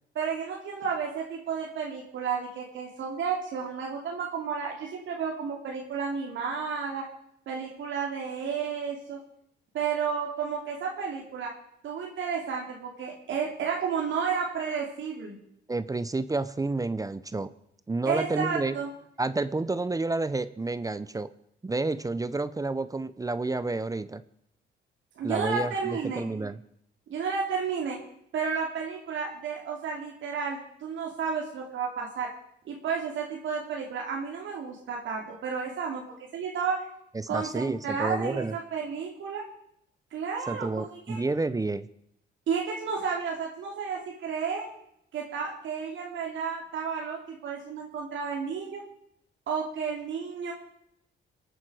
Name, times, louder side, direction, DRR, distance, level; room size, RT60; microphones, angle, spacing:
voice 1, 0.1-7.1 7.5-9.2 9.7-11.5 11.8-15.3 18.1-18.9 25.2-26.3 27.1-28.0 28.3-32.3 32.7-36.0 36.3-36.9 37.3-39.5 40.1-41.2 42.5-44.7 45.1-48.8 49.5-50.5, right 6 dB, 75° right, -1 dB, 2.7 m, -32 dB
voice 2, 15.7-17.5 17.9-18.8 19.2-21.3 21.6-24.2 25.2-26.6 37.1-38.6 40.5-41.9, right 3 dB, 15° right, 14 dB, 0.7 m, -30 dB
25.5 x 9.1 x 4.9 m, 0.74 s
cardioid pair, 90°, 20 cm